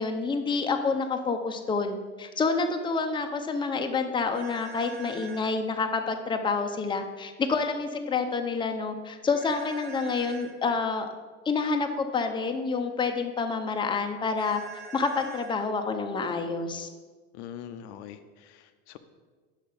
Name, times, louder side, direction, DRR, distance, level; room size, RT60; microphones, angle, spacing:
voice 1, 0.0-11.1 11.5-14.6 14.9-16.9, left 4 dB, 15° left, 5 dB, 0.6 m, -28 dB
sound 1, 4.3-5.5 9.3-10.5 14.4-15.5, right 5 dB, 65° right, 1.4 m, -44 dB
voice 2, 17.3-19.0, left 9 dB, 65° left, 9 dB, 0.5 m, -43 dB
5.6 x 5.3 x 5.1 m, 1.4 s
hypercardioid pair, 75°, 37 cm